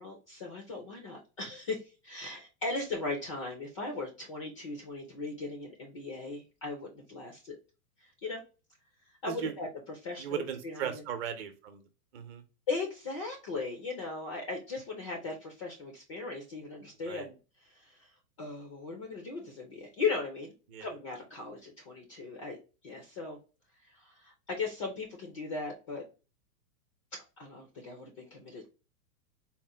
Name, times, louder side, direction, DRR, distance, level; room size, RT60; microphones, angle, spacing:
voice 1, 0.0-7.6 8.0-8.4 9.2-11.0 12.7-18.1 18.4-22.6 22.8-23.4 23.8-26.0 27.4-28.7, left 3 dB, 25° left, 2 dB, 0.3 m, -38 dB
voice 2, 10.2-11.8 12.1-12.4 17.1-17.3 20.7-20.9, right 8 dB, 40° right, 8 dB, 0.8 m, -37 dB
4.2 x 2.1 x 3.4 m, 0.32 s
hypercardioid pair, 140°, 47 cm